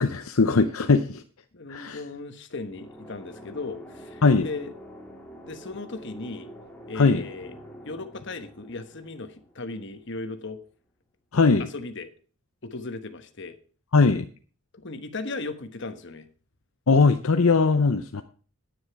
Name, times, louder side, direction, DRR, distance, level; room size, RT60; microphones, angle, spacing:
voice 1, 0.0-1.2 1.7-2.0 4.2-4.5 7.0-7.2 11.3-11.7 13.9-14.3 16.9-18.2, left 4 dB, 70° left, 7 dB, 0.7 m, -20 dB
voice 2, 1.5-4.7 5.4-6.5 6.9-7.5 7.8-10.6 11.6-12.1 12.6-13.6 14.7-16.3, left 3 dB, 50° left, 8 dB, 1.2 m, -37 dB
sound 1, 2.7-10.3, equal, 5° left, 1.9 m, -46 dB
10.0 x 9.8 x 4.7 m, 0.41 s
head